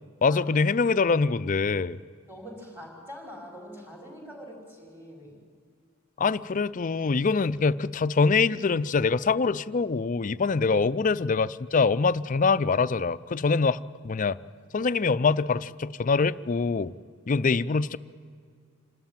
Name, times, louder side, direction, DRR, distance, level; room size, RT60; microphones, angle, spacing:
voice 1, 0.2-2.0 6.2-13.8 14.0-14.4 14.7-16.9 17.3-18.0, left 4 dB, 40° left, 15 dB, 0.4 m, -24 dB
voice 2, 2.3-5.4, equal, 10° right, -1 dB, 5.5 m, -44 dB
27.0 x 13.0 x 9.1 m, 2.1 s
head